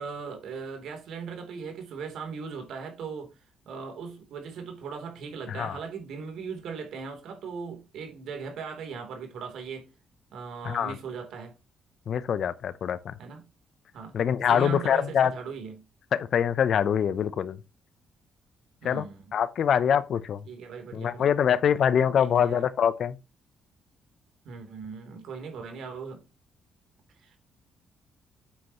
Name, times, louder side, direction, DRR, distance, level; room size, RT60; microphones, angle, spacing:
voice 1, 0.0-3.4 3.6-9.9 10.3-11.5 13.2-13.5 13.9-14.2 14.5-15.8 18.8-19.4 20.5-21.3 22.2-22.7 24.4-26.2 27.2-27.4, right 5 dB, 75° right, 3.3 m, -39 dB
voice 2, 5.5-5.8 10.6-10.9 12.1-13.1 14.1-15.3 16.1-17.6 18.8-19.1 19.3-20.4 20.9-23.2, left 8 dB, 65° left, 0.7 m, -24 dB
8.6 x 7.9 x 3.0 m
cardioid pair, 90°, 0 cm